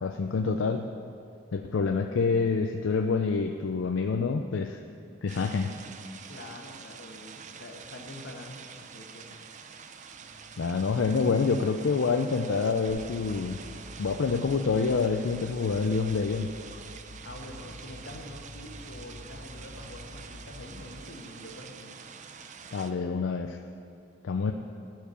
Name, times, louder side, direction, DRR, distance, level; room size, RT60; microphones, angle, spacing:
voice 1, 0.0-0.9 1.5-4.8 5.2-5.7 10.6-13.6 14.0-16.5 22.7-23.6 24.2-24.5, left 4 dB, 80° left, 5 dB, 0.4 m, -27 dB
sound 1, 5.3-22.9, right 6 dB, 40° right, 0.5 m, -47 dB
voice 2, 6.3-9.4 17.2-21.9 24.4-24.5, left 1 dB, 65° left, 2 dB, 1.2 m, -46 dB
sound 2, 10.1-20.0, equal, 45° left, 1.5 m, -56 dB
sound 3, 12.9-21.9, equal, 5° left, 2.2 m, -48 dB
14.0 x 4.7 x 6.8 m, 2.5 s
head